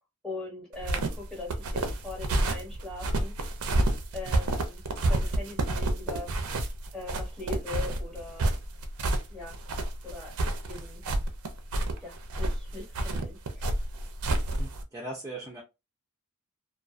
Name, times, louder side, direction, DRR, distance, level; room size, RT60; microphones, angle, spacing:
voice 1, 0.2-3.3 4.1-6.3 6.9-8.6 9.3-9.6 10.0-10.3 10.7-11.0 12.0-13.7, left 3 dB, 5° left, 1.0 m, -41 dB
sound 1, 0.8-14.8, right 2 dB, 80° right, 0.5 m, -29 dB
voice 2, 14.5-15.6, right 1 dB, 15° right, 0.4 m, -39 dB
2.3 x 2.3 x 2.4 m
head